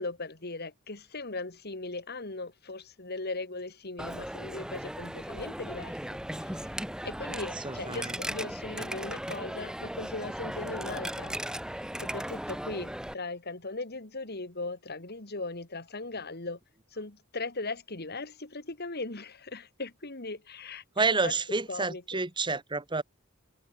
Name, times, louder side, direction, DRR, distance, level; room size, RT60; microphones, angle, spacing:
voice 1, 0.0-6.0 6.3-6.7 7.0-16.6 16.9-22.2, left 3 dB, 50° left, 2.6 m, -38 dB
Coin (dropping), 4.0-13.1, right 1 dB, 5° right, 1.4 m, -37 dB
voice 2, 7.6-8.1 21.0-23.0, right 3 dB, 20° right, 1.6 m, -29 dB
head